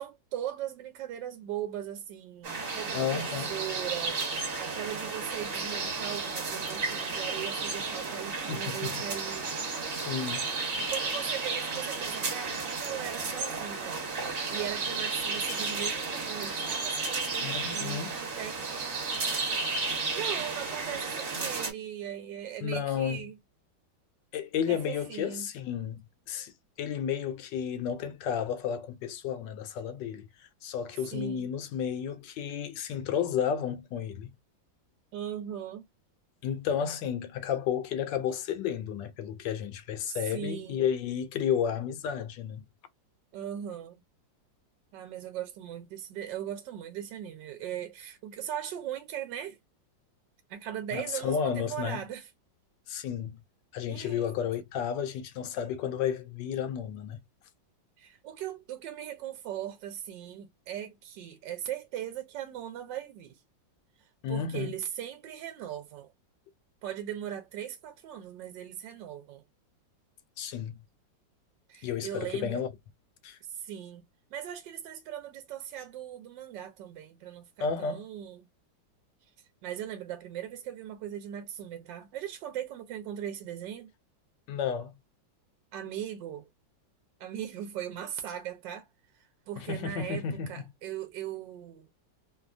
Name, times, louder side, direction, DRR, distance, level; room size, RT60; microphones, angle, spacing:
voice 1, 0.0-4.2 4.6-9.5 10.8-14.0 14.5-19.0 20.1-23.3 24.7-25.5 31.1-31.5 35.1-35.8 40.0-40.8 43.3-44.0 44.9-49.6 50.5-52.3 53.9-54.3 58.0-63.4 64.3-66.1 66.8-69.4 71.7-72.6 73.4-74.1 74.3-78.4 79.6-83.9 85.7-86.5 87.2-88.9 89.1-91.9, right 10 dB, 75° right, 1.2 m, -39 dB
sound 1, 2.4-21.7, right 4 dB, 45° right, 1.4 m, -33 dB
voice 2, 2.9-3.5 8.5-9.0 10.0-10.5 17.4-18.2 22.6-23.2 24.3-26.0 26.3-26.5 26.8-34.3 36.4-42.6 50.9-52.0 52.9-53.4 53.7-57.2 64.2-64.7 70.4-70.8 71.8-72.7 73.2-73.4 77.6-78.0 84.5-84.9 89.6-90.5, left 8 dB, 75° left, 1.2 m, -32 dB
3.2 x 2.1 x 2.4 m
omnidirectional pair, 2.1 m